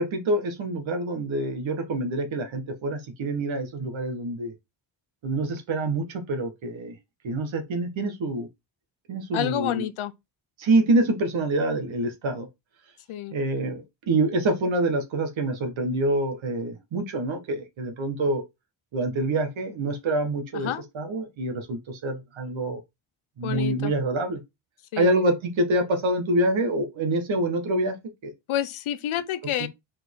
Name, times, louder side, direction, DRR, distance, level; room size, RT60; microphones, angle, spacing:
voice 1, 0.0-4.5 5.2-7.0 7.2-8.5 9.1-9.9 10.6-12.5 13.3-18.4 18.9-22.8 23.4-24.4 25.0-28.3 29.6-29.7, right 2 dB, 70° right, 1.7 m, -26 dB
voice 2, 9.3-10.1 13.1-13.4 20.5-20.8 23.4-23.9 24.9-25.2 28.5-29.7, left 11 dB, 85° left, 1.0 m, -29 dB
4.8 x 4.4 x 4.7 m
cardioid pair, 110°, 48 cm